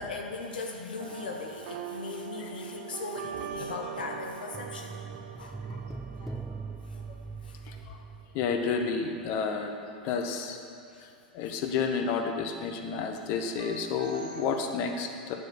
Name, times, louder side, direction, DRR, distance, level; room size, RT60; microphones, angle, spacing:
voice 1, 0.0-5.0 5.4-5.6 6.9-7.0 7.4-7.6 10.9-11.0, left 4 dB, 80° left, 2 dB, 0.7 m, -38 dB
sound 1, 1.0-8.2 13.6-14.5, right 8 dB, 65° right, 0.6 m, -42 dB
sound 2, 4.5-9.0 9.2-9.4, right 4 dB, 5° right, 0.4 m, -41 dB
voice 2, 7.7-8.0 8.3-9.8 10.0-10.6 11.0-11.1 11.3-15.4, left 5 dB, 50° left, 4 dB, 1.0 m, -31 dB
9.5 x 4.8 x 6.5 m, 2.5 s
hypercardioid pair, 95°, 5 cm